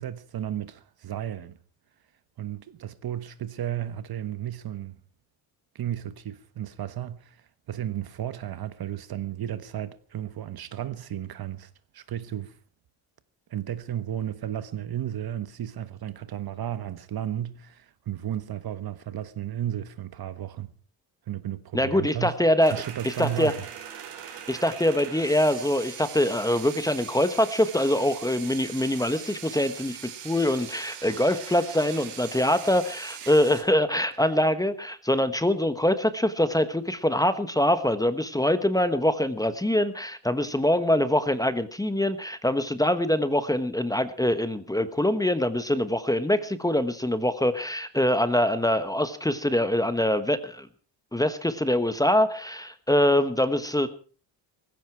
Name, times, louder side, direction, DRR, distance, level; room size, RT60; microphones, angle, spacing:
voice 1, 0.0-1.6 2.4-5.0 5.7-12.6 13.5-20.7 21.3-22.4 22.7-23.6 24.0-24.1 33.2-33.3, right 11 dB, 45° right, 1.3 m, -34 dB
voice 2, 21.7-22.8 23.0-23.5 24.5-50.7 51.1-53.9, left 1 dB, 5° left, 1.2 m, -24 dB
sound 1, 22.6-33.6, right 9 dB, 90° right, 4.8 m, -41 dB
18.5 x 16.0 x 4.6 m
cardioid pair, 125°, 49 cm